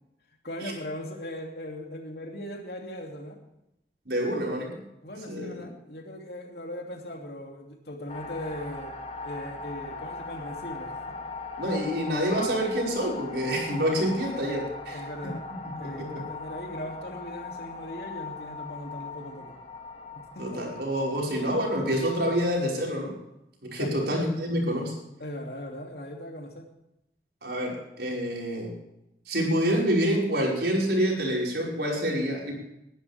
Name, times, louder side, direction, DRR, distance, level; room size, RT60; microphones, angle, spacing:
voice 1, 0.4-3.4 5.0-8.9 9.2-10.9 14.9-15.5 15.7-19.5 20.3-20.7 23.8-24.1 25.2-26.7, left 1 dB, 65° left, 2 dB, 2.8 m, -39 dB
voice 2, 4.1-4.7 5.3-5.7 11.6-15.0 15.8-15.9 20.4-23.1 23.6-24.9 27.4-28.7 29.3-32.5, equal, 70° right, -2 dB, 5.5 m, -27 dB
sound 1, 8.1-22.5, left 3 dB, 35° left, 1.5 m, -40 dB
20.5 x 11.5 x 3.6 m, 0.85 s
head